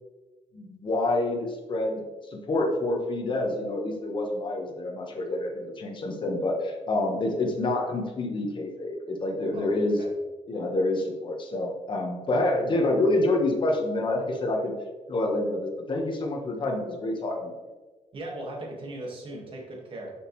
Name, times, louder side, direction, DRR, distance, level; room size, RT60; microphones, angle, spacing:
voice 1, 0.5-2.0 2.3-10.0 10.5-14.7 15.1-17.5, left 2 dB, 40° left, 1 dB, 1.3 m, -27 dB
voice 2, 9.5-10.1 18.1-20.1, right 1 dB, 45° right, -1 dB, 1.7 m, -38 dB
6.4 x 6.3 x 3.1 m, 1.2 s
cardioid pair, 125°, 12 cm